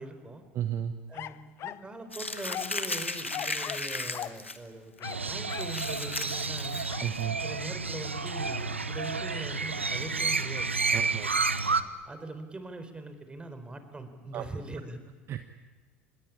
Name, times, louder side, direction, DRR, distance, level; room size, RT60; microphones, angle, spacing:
voice 1, 0.0-0.4 1.1-6.8 7.4-11.3 12.1-15.0, right 2 dB, 15° right, 9 dB, 4.2 m, -42 dB
voice 2, 0.5-0.9 7.0-7.4 10.9-11.3 14.3-14.4 15.3-15.5, right 11 dB, 40° right, 9 dB, 1.4 m, -33 dB
sound 1, 1.1-1.9 2.5-2.8 3.3-4.4 5.0-5.8 6.9-7.1, left 12 dB, 45° left, 0.8 m, -39 dB
Crumpling crinkling, 2.1-4.6 5.0-5.1 5.5-7.2, left 2 dB, 90° left, 1.4 m, -35 dB
Crow, 5.0-11.8, right 4 dB, 85° right, 0.9 m, -30 dB
26.5 x 21.0 x 8.8 m, 1.4 s
figure-of-eight pair, 70°, 6 cm